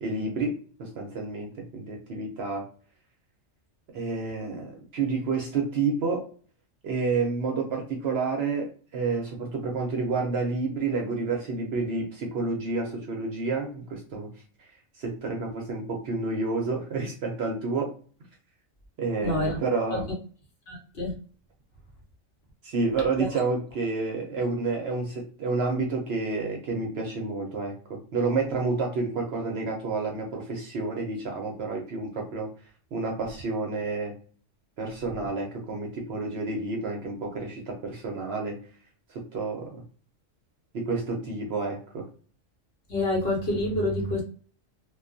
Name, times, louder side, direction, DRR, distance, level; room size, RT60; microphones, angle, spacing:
voice 1, 0.0-2.7 3.9-6.3 6.8-14.4 14.9-17.9 19.0-20.0 22.6-32.5 32.9-34.2 34.8-38.6 39.1-39.8 40.7-42.1, right 3 dB, 65° right, 1 dB, 0.7 m, -29 dB
voice 2, 19.2-19.6 19.9-20.0 20.7-21.1 23.2-23.3 42.9-44.2, left 1 dB, 55° left, -1 dB, 1.0 m, -27 dB
2.3 x 2.2 x 2.4 m, 0.41 s
omnidirectional pair, 1.4 m